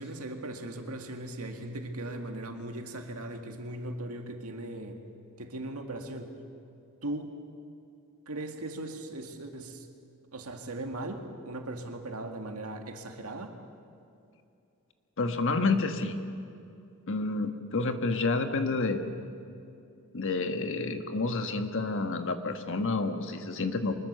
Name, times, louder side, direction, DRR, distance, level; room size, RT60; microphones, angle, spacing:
voice 1, 0.0-5.0 5.4-6.4 7.0-7.3 8.3-9.9 10.3-13.5, right 1 dB, 80° right, 4 dB, 2.1 m, -38 dB
voice 2, 15.2-16.2 17.1-19.0 20.1-23.9, left 3 dB, 60° left, 7 dB, 1.4 m, -29 dB
24.5 x 21.0 x 6.8 m, 2.6 s
head